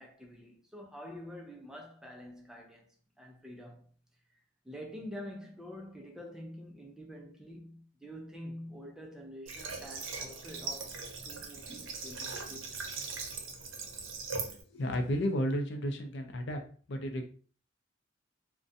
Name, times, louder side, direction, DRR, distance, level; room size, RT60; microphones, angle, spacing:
voice 1, 0.0-3.9 4.6-12.8, equal, 5° right, 0.4 m, -47 dB
Water / Water tap faucet, 9.5-14.6, right 4 dB, 80° right, 0.6 m, -40 dB
voice 2, 14.7-16.6 16.9-17.3, equal, 60° left, 0.4 m, -32 dB
2.5 x 2.1 x 2.5 m
head